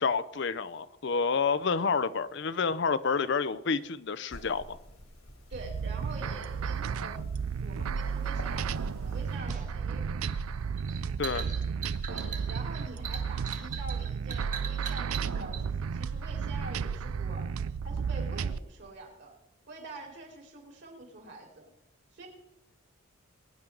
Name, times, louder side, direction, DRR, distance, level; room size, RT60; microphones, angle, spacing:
voice 1, 0.0-4.8 11.2-11.5, left 5 dB, 55° left, 15 dB, 0.5 m, -29 dB
sound 1, 4.3-9.4, left 1 dB, 90° left, 2.8 m, -47 dB
voice 2, 5.5-7.2 7.6-10.1 12.1-17.5 17.8-19.3 19.7-21.7 22.1-22.3, right 2 dB, 55° right, -1 dB, 4.1 m, -46 dB
sound 2, 5.5-18.6, right 6 dB, 85° right, 0.4 m, -33 dB
sound 3, 9.5-15.6, right 8 dB, 35° right, 1.4 m, -40 dB
22.0 x 10.5 x 3.8 m, 0.86 s
head